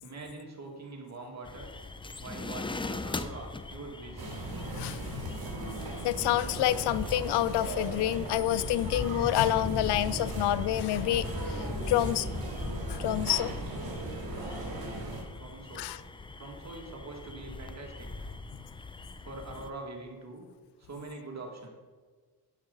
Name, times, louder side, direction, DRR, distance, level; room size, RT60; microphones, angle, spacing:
voice 1, 0.0-1.7 2.2-4.3 15.4-15.9 16.4-18.3 19.2-20.5 20.8-21.7, right 2 dB, 40° right, 1 dB, 2.1 m, -43 dB
sound 1, 1.4-19.7, left 3 dB, 15° left, 0.5 m, -40 dB
sound 2, 4.2-15.2, right 2 dB, 60° right, 2.1 m, -38 dB
voice 2, 6.0-12.3 12.9-13.9 15.8-16.0, left 13 dB, 75° left, 16 dB, 0.5 m, -28 dB
sound 3, 9.7-11.9, right 2 dB, 20° right, 1.0 m, -47 dB
10.5 x 6.4 x 4.0 m, 1.4 s
cardioid pair, 80°, 41 cm